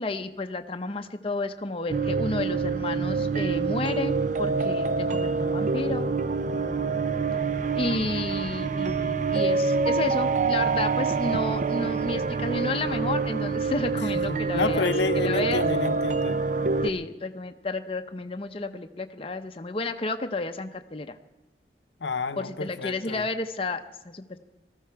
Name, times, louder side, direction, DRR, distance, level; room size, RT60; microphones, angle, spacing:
voice 1, 0.0-6.1 7.7-15.6 16.8-21.2 22.4-24.4, left 2 dB, 30° left, 7 dB, 0.6 m, -31 dB
sound 1, 1.9-16.9, right 4 dB, 45° right, 0.5 m, -26 dB
voice 2, 14.3-16.4 22.0-23.3, left 4 dB, 85° left, 10 dB, 0.8 m, -29 dB
19.0 x 13.5 x 4.6 m, 1.1 s
head